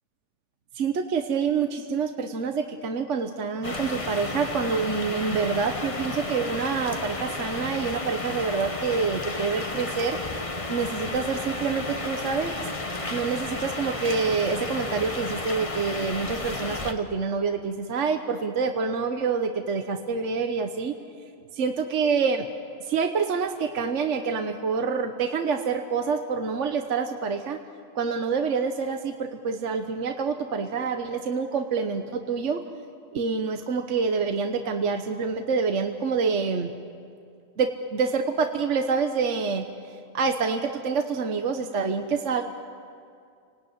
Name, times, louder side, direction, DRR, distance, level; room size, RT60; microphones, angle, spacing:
voice 1, 0.7-10.2 10.7-12.5 13.1-20.9 21.5-22.5 22.8-27.6 27.9-32.6 33.1-36.7 37.6-39.7 40.1-42.4, right 5 dB, 60° right, 6 dB, 1.4 m, -27 dB
sound 1, 3.6-16.9, left 2 dB, 25° left, 1.3 m, -32 dB
29.5 x 18.5 x 9.5 m, 2.3 s
omnidirectional pair, 1.4 m